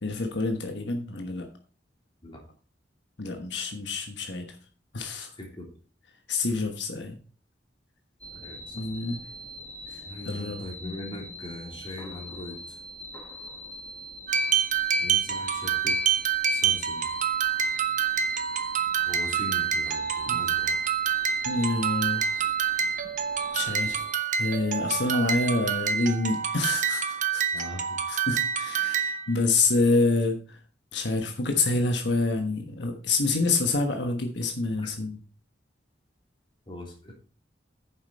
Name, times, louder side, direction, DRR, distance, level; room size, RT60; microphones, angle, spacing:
voice 1, 0.0-1.5 3.2-4.5 4.9-5.3 6.3-7.2 8.7-9.2 9.9-10.6 20.3-20.4 21.4-22.5 23.5-24.0 24.4-27.4 28.1-30.6 30.9-35.2, left 3 dB, 75° left, 5 dB, 1.3 m, -27 dB
sound 1, 8.2-24.1, left 1 dB, 10° left, 1.3 m, -43 dB
voice 2, 8.4-8.9 9.9-12.8 14.7-16.0 16.5-17.0 19.1-20.8 27.5-28.0 34.8-34.9 36.7-37.1, left 2 dB, 30° left, 0 dB, 3.3 m, -41 dB
sound 2, 14.3-29.3, right 7 dB, 45° right, 1.0 m, -27 dB
9.3 x 7.2 x 4.2 m, 0.40 s
head